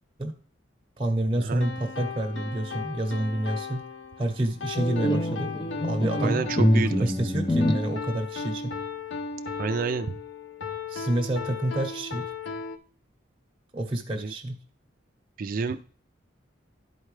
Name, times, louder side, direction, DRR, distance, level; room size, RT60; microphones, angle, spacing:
voice 1, 1.0-3.8 4.2-5.5 5.8-6.4 7.0-8.7 10.9-12.3 13.7-14.6, right 1 dB, 25° right, -1 dB, 1.0 m, -28 dB
sound 1, 1.6-12.8, left 4 dB, 70° left, 0.7 m, -36 dB
sound 2, 4.8-7.9, left 1 dB, 25° left, 0.6 m, -25 dB
voice 2, 6.2-7.1 9.6-10.2 14.1-14.3 15.4-15.8, right 4 dB, 45° right, 9 dB, 0.3 m, -29 dB
11.0 x 4.6 x 3.2 m, 0.42 s
head